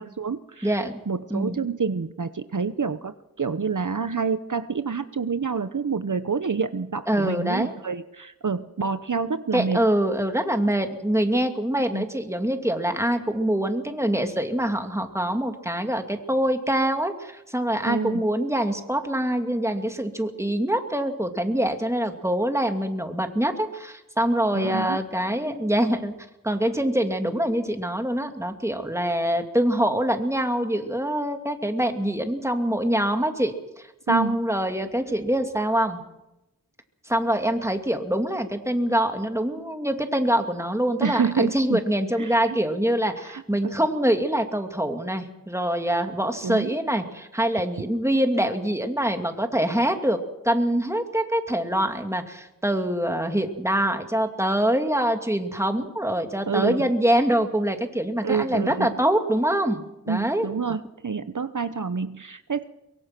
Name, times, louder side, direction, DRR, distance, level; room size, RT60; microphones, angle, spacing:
voice 1, 0.0-9.9 11.9-12.0 17.8-18.2 24.5-25.0 34.1-34.4 41.0-41.8 42.2-42.6 43.2-43.7 46.4-46.7 56.5-56.9 58.2-58.9 60.1-62.6, right 5 dB, 60° right, 11 dB, 0.9 m, -28 dB
voice 2, 0.6-1.0 1.3-1.6 7.1-7.7 9.5-26.1 26.4-36.0 37.1-50.2 50.4-60.5, right 1 dB, 10° right, 5 dB, 2.5 m, -24 dB
23.5 x 23.0 x 6.0 m, 0.93 s
wide cardioid pair, 50°, 35 cm